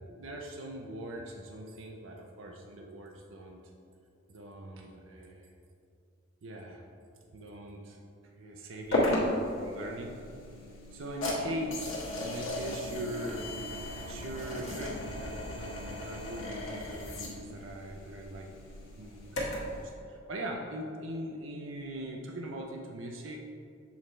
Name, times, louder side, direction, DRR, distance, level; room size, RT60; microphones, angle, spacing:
voice 1, 0.1-3.6 4.3-5.5 6.4-6.8 7.3-8.0 8.4-10.2 10.9-13.5 14.1-18.6 19.0-23.4, right 1 dB, 70° right, 1 dB, 0.5 m, -41 dB
sound 1, 8.9-19.8, left 1 dB, 75° left, 1.3 m, -35 dB
7.1 x 3.2 x 4.3 m, 2.5 s
head